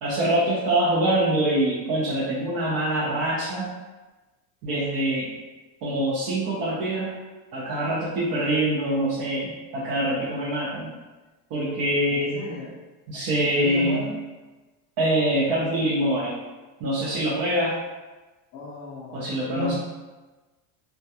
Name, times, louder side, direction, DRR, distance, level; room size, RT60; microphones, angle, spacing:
voice 1, 0.0-3.7 4.6-5.3 5.8-7.1 7.5-10.9 11.5-12.4 13.1-14.0 15.0-16.3 16.8-17.8 19.1-19.7, right 1 dB, 50° right, -8 dB, 0.6 m, -24 dB
voice 2, 12.0-12.8 13.3-14.2 18.5-19.7, left 2 dB, 35° left, -10 dB, 0.4 m, -34 dB
2.2 x 2.2 x 2.7 m, 1.2 s
cardioid pair, 160°, 48 cm